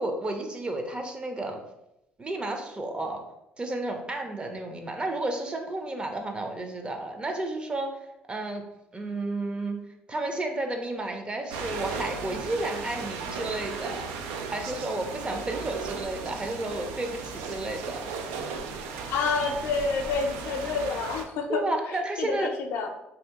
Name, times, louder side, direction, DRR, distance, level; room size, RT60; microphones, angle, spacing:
voice 1, 0.0-1.6 2.2-3.2 3.6-7.9 8.3-8.6 8.9-9.8 10.1-14.1 14.5-18.0 21.5-22.5, right 2 dB, 25° right, 4 dB, 0.6 m, -32 dB
sound 1, 11.5-21.3, right 5 dB, 90° right, 0.4 m, -36 dB
voice 2, 19.0-22.9, left 4 dB, 80° left, 3 dB, 0.5 m, -29 dB
2.7 x 2.5 x 3.5 m, 0.86 s
supercardioid pair, 80°, 4 cm